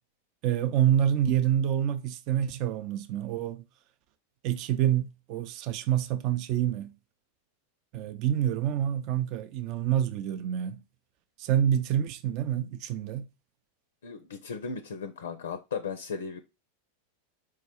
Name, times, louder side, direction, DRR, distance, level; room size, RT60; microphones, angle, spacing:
voice 1, 0.4-3.6 4.4-6.9 7.9-10.8 11.4-13.3, right 10 dB, 45° right, 0.5 m, -27 dB
voice 2, 14.0-16.4, left 5 dB, 75° left, 0.4 m, -36 dB
4.6 x 2.3 x 4.2 m
hypercardioid pair, 95°, 0 cm